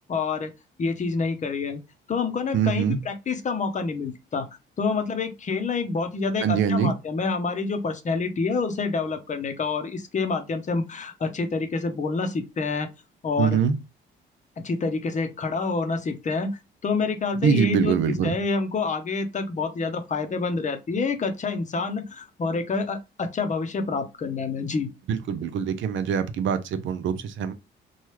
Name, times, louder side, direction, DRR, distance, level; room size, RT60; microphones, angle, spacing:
voice 1, 0.1-0.5 0.8-1.8 2.1-4.5 4.8-12.9 13.2-13.6 14.6-24.9, left 4 dB, 40° left, 0.7 m, -27 dB
voice 2, 2.5-3.0 6.4-6.9 13.4-13.8 17.4-18.4 25.1-27.5, right 7 dB, 75° right, 0.5 m, -23 dB
3.0 x 2.3 x 3.1 m
cardioid pair, 90°, 20 cm